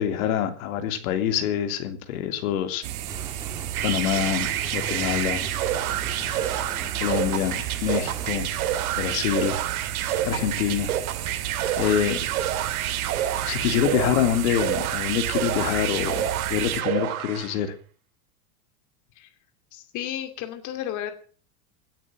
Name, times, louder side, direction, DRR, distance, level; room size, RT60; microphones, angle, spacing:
voice 1, 0.0-2.8 3.8-5.5 6.9-8.5 9.0-9.6 10.2-10.9 11.4-12.2 13.4-16.2 16.5-17.7, left 10 dB, 70° left, 7 dB, 3.2 m, -26 dB
sound 1, 2.8-16.8, right 12 dB, 60° right, 2.3 m, -33 dB
sound 2, 3.1-8.3, right 3 dB, 10° right, 3.0 m, -40 dB
sound 3, 3.7-17.6, right 11 dB, 75° right, 2.6 m, -28 dB
voice 2, 19.7-21.1, left 11 dB, 40° left, 7 dB, 2.6 m, -33 dB
17.0 x 9.3 x 7.6 m, 0.42 s
supercardioid pair, 130°, 43 cm